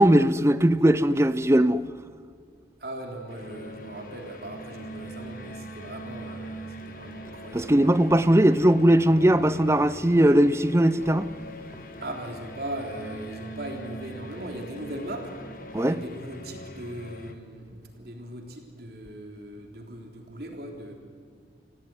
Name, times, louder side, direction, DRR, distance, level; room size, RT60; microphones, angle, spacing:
voice 1, 0.0-1.8 7.5-11.3 15.7-16.0, right 1 dB, 15° right, 0.6 m, -19 dB
voice 2, 2.8-8.4 12.0-15.3 15.7-20.9, right 1 dB, 60° right, 3.5 m, -39 dB
sound 1, 3.3-17.3, equal, 50° left, 1.7 m, -42 dB
28.0 x 17.0 x 9.6 m
head